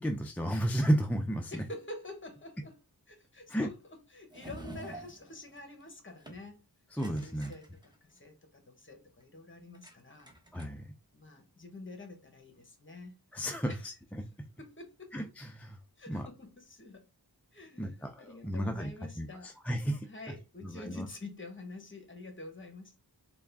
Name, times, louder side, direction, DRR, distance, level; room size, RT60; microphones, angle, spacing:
voice 1, 0.0-1.5 3.5-3.7 6.9-7.5 10.5-10.8 13.3-13.9 15.1-15.8 16.1-16.3 17.8-18.9 19.2-20.1 20.6-21.1, equal, 5° left, 0.4 m, -32 dB
voice 2, 1.5-6.6 7.2-10.3 11.1-13.1 13.7-13.8 14.6-15.2 16.0-17.1 17.5-19.5 20.0-23.0, left 2 dB, 30° left, 1.0 m, -47 dB
sound 1, 4.3-5.9 6.2-6.5 7.0-8.2 9.7-9.9 10.2-10.9, right 1 dB, 10° right, 0.8 m, -47 dB
3.5 x 2.3 x 3.4 m
wide cardioid pair, 80°, 39 cm